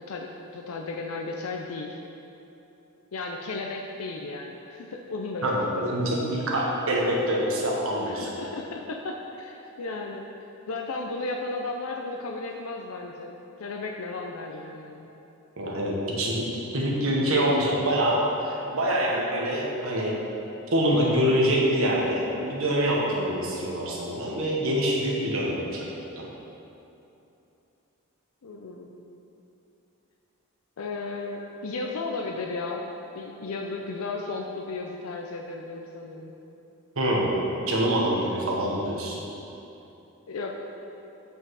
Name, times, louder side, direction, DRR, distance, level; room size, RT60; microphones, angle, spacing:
voice 1, 0.0-2.0 3.1-5.8 8.1-10.3 10.7-13.3 13.6-15.1 28.4-29.0 30.8-32.8 33.1-36.3 40.3-40.7, left 3 dB, 75° left, 2 dB, 0.5 m, -34 dB
voice 2, 5.4-8.4 15.6-16.5 16.7-20.2 20.7-25.9 26.2-26.3 36.9-37.4 37.7-39.2, equal, 70° right, -3 dB, 1.4 m, -25 dB
8.3 x 5.5 x 4.7 m, 2.9 s
head